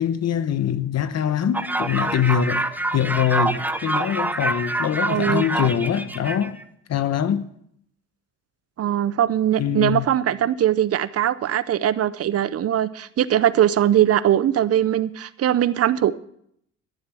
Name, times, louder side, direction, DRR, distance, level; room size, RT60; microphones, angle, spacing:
voice 1, 0.0-2.7 2.9-6.6 6.9-7.4 9.6-10.1, left 8 dB, 60° left, 1.0 m, -23 dB
sound 1, 1.5-6.6, right 2 dB, 5° right, 0.7 m, -26 dB
voice 2, 5.1-5.5 8.8-16.1, right 11 dB, 50° right, 0.6 m, -21 dB
12.5 x 7.2 x 7.6 m
cardioid pair, 90°, 30 cm